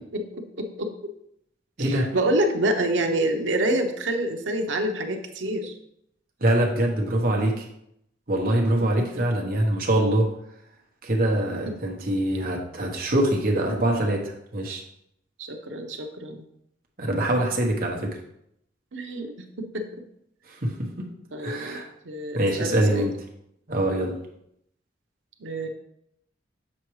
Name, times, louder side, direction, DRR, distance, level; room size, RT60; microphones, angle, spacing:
voice 1, 0.1-0.9 1.8-5.8 9.0-9.2 14.7-14.8 15.4-16.4 18.9-19.8 21.3-23.1 25.4-25.7, right 1 dB, 90° right, 4 dB, 0.9 m, -27 dB
voice 2, 1.8-2.1 6.4-7.6 8.3-10.3 11.0-14.8 17.0-18.2 20.5-21.0 21.4-21.9 22.3-23.1 23.7-24.2, right 1 dB, 50° right, 0 dB, 1.2 m, -24 dB
7.4 x 4.6 x 3.2 m, 0.75 s
head